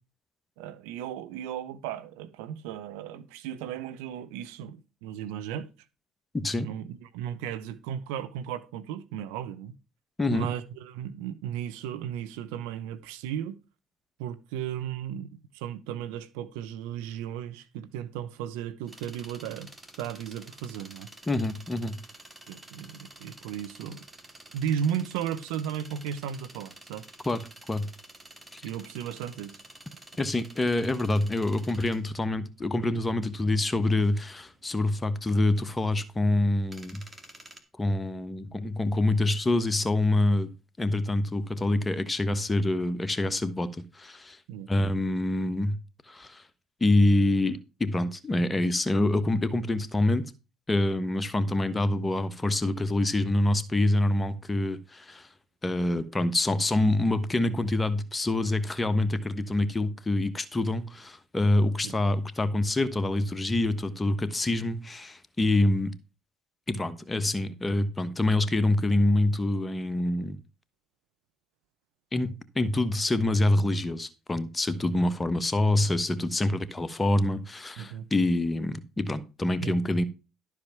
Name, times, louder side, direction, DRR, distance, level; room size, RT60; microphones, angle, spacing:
voice 1, 0.6-5.7 6.6-9.7 10.3-13.6 14.2-19.7 20.0-21.1 22.5-24.0 24.5-27.0 28.6-29.6 44.5-44.7 61.8-62.0 77.8-78.1 79.6-79.8, right 9 dB, 80° right, 0.8 m, -35 dB
voice 2, 6.3-6.7 10.2-10.5 21.3-22.0 27.2-27.4 27.7-27.9 28.5-28.6 30.2-37.0 37.8-40.5 40.8-44.4 44.7-45.8 46.1-46.4 46.8-50.3 50.7-55.3 55.6-65.9 66.7-70.4 72.1-80.0, left 2 dB, 20° left, 1.2 m, -26 dB
sound 1, 18.9-37.6, right 2 dB, 15° right, 2.3 m, -50 dB
12.0 x 4.9 x 5.9 m
hypercardioid pair, 70°, 0 cm